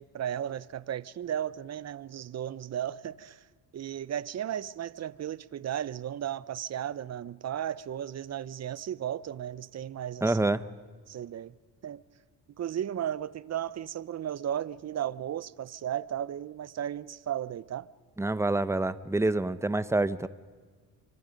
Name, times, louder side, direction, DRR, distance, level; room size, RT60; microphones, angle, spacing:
voice 1, 0.0-3.4 3.7-10.5 11.1-11.5 11.8-12.0 12.6-17.9, right 10 dB, 40° right, 0.7 m, -35 dB
voice 2, 10.2-10.7 18.2-20.3, right 2 dB, 5° right, 0.8 m, -27 dB
30.0 x 25.0 x 5.3 m
cardioid pair, 90°, 40 cm